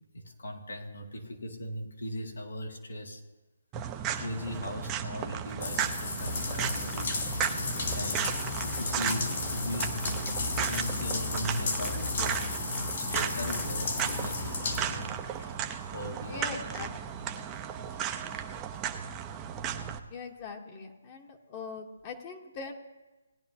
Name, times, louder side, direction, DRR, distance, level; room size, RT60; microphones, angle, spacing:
voice 1, 0.1-3.2 4.2-7.1 7.9-8.3 8.6-10.0 10.5-15.3 15.9-16.7, left 1 dB, 85° left, 3 dB, 1.9 m, -38 dB
sound 1, 3.7-20.0, right 9 dB, 20° right, 0.6 m, -35 dB
sound 2, 5.6-15.5 16.0-16.1 16.8-16.9, left 3 dB, 55° left, 2.5 m, -33 dB
voice 2, 16.3-16.9 20.1-22.7, left 5 dB, 30° left, 3 dB, 1.1 m, -41 dB
18.0 x 10.5 x 2.8 m, 1.1 s
hypercardioid pair, 150°, 0 cm